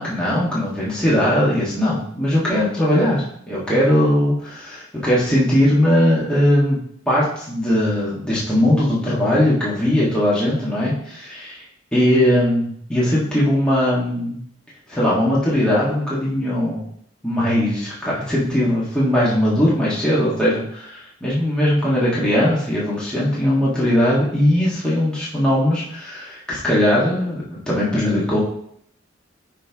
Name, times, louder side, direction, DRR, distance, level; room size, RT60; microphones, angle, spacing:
voice 1, 0.0-6.8 7.1-11.6 11.9-14.4 14.9-16.9 17.2-28.4, left 1 dB, 5° left, -8 dB, 1.6 m, -19 dB
10.0 x 3.4 x 3.5 m, 0.66 s
head